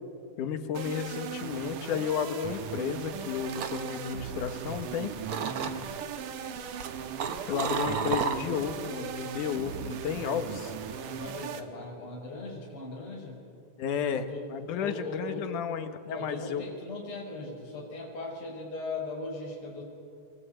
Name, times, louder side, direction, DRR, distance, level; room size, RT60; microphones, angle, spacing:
voice 1, 0.4-5.1 7.5-10.7 13.8-16.6, left 7 dB, 80° left, 9 dB, 2.9 m, -32 dB
sound 1, 0.7-11.6, right 7 dB, 90° right, 3.0 m, -38 dB
sound 2, 3.1-4.9 5.3-6.0 6.6-8.8 9.1-9.5, right 6 dB, 55° right, 1.8 m, -33 dB
voice 2, 5.4-5.8 11.1-13.4 14.1-14.5 14.8-15.6 16.0-19.8, left 2 dB, 45° left, -2 dB, 6.2 m, -39 dB
25.5 x 23.0 x 8.9 m, 2.4 s
omnidirectional pair, 3.6 m